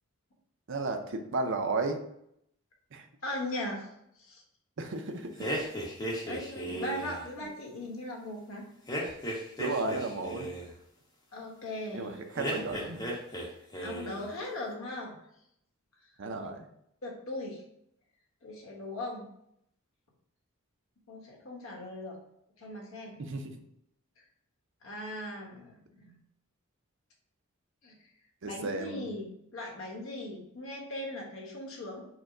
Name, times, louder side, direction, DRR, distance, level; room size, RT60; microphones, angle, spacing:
voice 1, 0.7-2.0 2.9-3.1 4.8-5.5 9.6-10.5 11.9-13.2 16.2-16.7 23.2-23.6 28.4-29.0, right 3 dB, 60° right, 6 dB, 0.5 m, -34 dB
voice 2, 3.2-4.4 6.2-8.7 11.3-12.2 13.8-15.2 16.4-16.5 17.0-17.6 18.4-19.3 21.1-22.2 22.6-23.2 24.2-24.3 24.8-26.2 27.8-28.0 28.4-32.0, left 1 dB, 65° left, -1 dB, 1.2 m, -39 dB
sound 1, 5.4-7.2 8.9-10.7 12.3-13.5 13.7-14.2, equal, 15° left, 0.9 m, -35 dB
4.9 x 2.2 x 4.8 m, 0.74 s
head